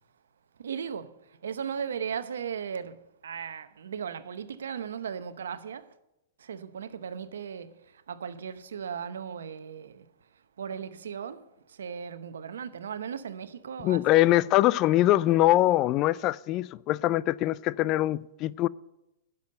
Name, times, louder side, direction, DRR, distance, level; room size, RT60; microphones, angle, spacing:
voice 1, 0.6-5.9 6.4-10.1 10.6-14.3, right 7 dB, 80° right, 0.8 m, -37 dB
voice 2, 13.8-18.7, left 16 dB, 40° left, 0.4 m, -23 dB
10.5 x 7.0 x 7.9 m
hypercardioid pair, 120°, 0 cm